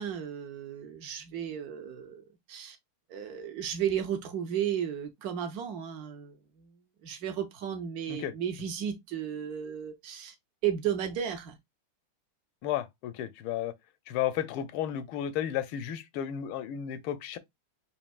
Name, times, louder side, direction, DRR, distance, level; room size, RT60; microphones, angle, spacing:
voice 1, 0.0-2.8 3.1-10.3 10.6-11.6, right 9 dB, 80° right, 0.8 m, -34 dB
voice 2, 12.6-13.7 14.1-17.4, left 10 dB, 75° left, 1.4 m, -33 dB
5.3 x 2.6 x 2.3 m
omnidirectional pair, 2.4 m